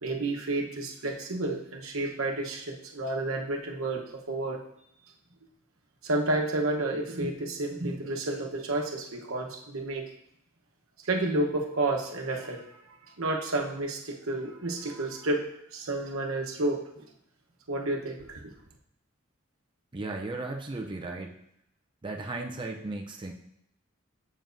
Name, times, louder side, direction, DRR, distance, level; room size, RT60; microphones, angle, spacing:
voice 1, 0.0-4.6 6.0-10.1 11.0-12.6 13.2-15.5 15.7-17.0 17.7-18.5, right 2 dB, 85° right, 1 dB, 1.0 m, -30 dB
voice 2, 19.9-21.3 22.0-23.3, right 2 dB, 25° right, 1 dB, 0.5 m, -35 dB
7.3 x 7.0 x 2.6 m, 0.74 s
head